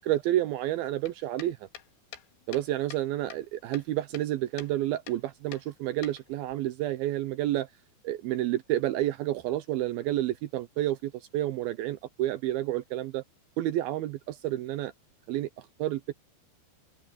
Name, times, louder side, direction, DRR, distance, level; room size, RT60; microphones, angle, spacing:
voice 1, 0.0-1.6 2.5-7.7 8.0-13.2 13.6-14.9 15.3-15.5 15.8-16.1, right 14 dB, 85° right, 2.1 m, -30 dB
sound 1, 1.0-3.1 3.3-4.3 4.6-4.7 5.1-5.2 5.5-6.6, left 10 dB, 75° left, 4.0 m, -47 dB
omnidirectional pair, 5.2 m